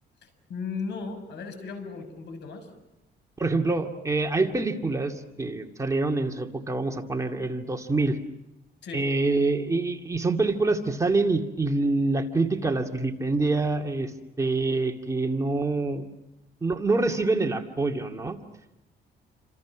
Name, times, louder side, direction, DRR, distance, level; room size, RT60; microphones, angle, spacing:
voice 1, 0.2-2.7 8.8-9.1, left 4 dB, 75° left, 8 dB, 6.5 m, -36 dB
voice 2, 3.4-8.2 8.9-14.1 14.4-16.0 16.6-18.4, right 3 dB, 15° right, 3 dB, 2.2 m, -26 dB
29.5 x 26.5 x 6.2 m, 0.94 s
cardioid pair, 115°, 18 cm